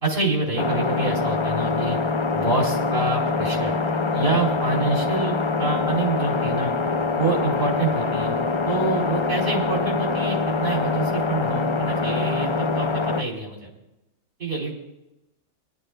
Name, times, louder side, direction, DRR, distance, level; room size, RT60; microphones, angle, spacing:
voice 1, 0.0-2.0 2.3-3.8 4.1-5.3 5.6-6.8 7.2-8.4 8.7-13.7 14.4-14.7, right 3 dB, 45° right, -1 dB, 3.1 m, -26 dB
sound 1, 0.6-13.2, left 4 dB, 45° left, 0.3 m, -24 dB
22.5 x 11.0 x 2.2 m, 0.96 s
omnidirectional pair, 1.3 m